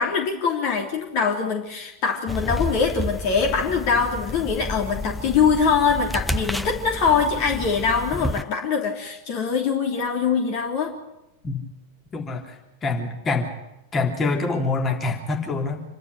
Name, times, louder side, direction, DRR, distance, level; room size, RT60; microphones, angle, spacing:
voice 1, 0.0-11.0, left 5 dB, 45° left, 2 dB, 3.2 m, -23 dB
sound 1, 2.3-8.4, left 1 dB, ahead, 0.7 m, -30 dB
voice 2, 12.1-13.5 13.9-15.8, left 3 dB, 20° left, 2 dB, 3.5 m, -25 dB
27.0 x 12.0 x 9.8 m, 0.93 s
figure-of-eight pair, 90°, 0 cm